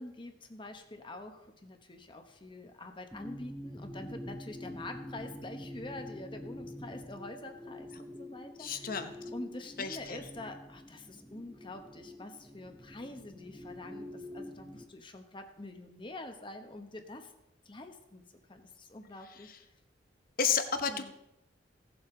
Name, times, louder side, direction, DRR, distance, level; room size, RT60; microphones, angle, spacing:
voice 1, 0.0-17.3 17.6-18.2 18.5-19.5 20.9-21.1, left 2 dB, 25° left, 6 dB, 1.0 m, -46 dB
sound 1, 3.1-14.8, left 1 dB, ahead, 0.7 m, -46 dB
voice 2, 8.6-9.1 9.8-10.2 20.4-21.1, left 6 dB, 50° left, 8 dB, 0.9 m, -31 dB
16.5 x 7.1 x 3.9 m, 0.84 s
head